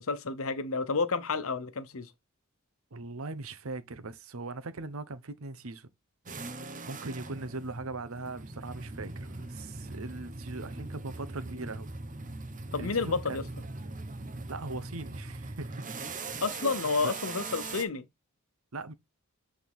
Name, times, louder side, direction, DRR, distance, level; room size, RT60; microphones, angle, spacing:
voice 1, 0.0-2.1 12.7-13.4 16.4-18.1, left 4 dB, 70° left, 0.9 m, -30 dB
voice 2, 2.9-5.9 6.8-11.9 12.8-13.5 14.5-15.7 17.0-17.1 18.7-18.9, right 3 dB, 70° right, 0.9 m, -40 dB
sound 1, 6.3-17.9, right 3 dB, 40° right, 1.0 m, -40 dB
8.5 x 3.6 x 3.6 m
head